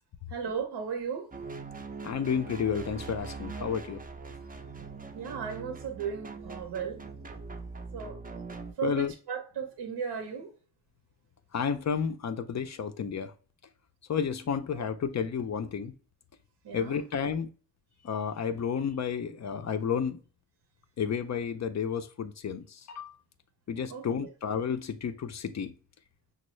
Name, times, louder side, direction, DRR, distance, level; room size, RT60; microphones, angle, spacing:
voice 1, 0.3-1.3 5.1-7.0 7.9-8.4 8.8-10.5 14.7-14.9 16.6-17.0 23.9-24.3, right 7 dB, 60° right, 0.7 m, -36 dB
sound 1, 1.3-8.7, right 4 dB, 20° right, 0.5 m, -42 dB
voice 2, 2.0-4.0 8.8-9.1 11.5-13.3 14.1-15.9 16.7-17.5 18.0-20.2 21.0-23.1 23.7-25.8, left 7 dB, 40° left, 0.4 m, -31 dB
5.2 x 2.0 x 3.0 m
cardioid pair, 60°, 46 cm